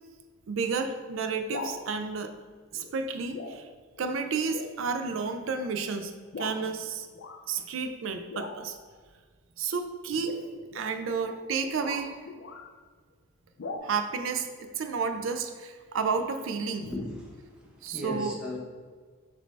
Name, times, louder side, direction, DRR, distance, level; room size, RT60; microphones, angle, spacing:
voice 1, 0.5-2.3 2.7-3.6 4.0-6.1 6.4-7.1 7.5-8.8 9.6-10.3 10.7-12.1 13.8-16.9 17.8-18.3, right 5 dB, 65° right, 7 dB, 0.4 m, -31 dB
sound 1, 1.3-1.8 2.7-3.0 3.3-3.6 4.0-4.1 4.5-4.8 5.4-5.6 6.3-6.6 7.1-7.4 8.3-8.8 10.1-12.7 13.6-13.8, left 3 dB, 60° left, 0.4 m, -40 dB
voice 2, 16.8-18.6, left 1 dB, 5° right, -3 dB, 0.7 m, -37 dB
6.3 x 2.6 x 3.2 m, 1.5 s
head